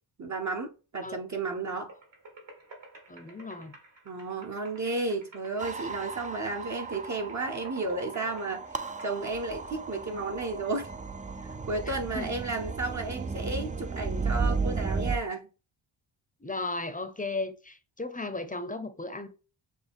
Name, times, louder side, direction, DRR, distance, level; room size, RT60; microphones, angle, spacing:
voice 1, 0.2-1.9 4.1-8.6 9.0-10.9 11.7-15.5, right 3 dB, 40° right, 0.8 m, -33 dB
sound 1, 1.9-9.1, right 2 dB, 65° right, 2.0 m, -51 dB
voice 2, 3.1-3.8 11.9-12.3 16.4-19.3, left 2 dB, 15° left, 0.7 m, -35 dB
sound 2, 5.6-15.2, right 4 dB, 20° right, 0.4 m, -34 dB
6.4 x 2.2 x 3.5 m
cardioid pair, 80°, 47 cm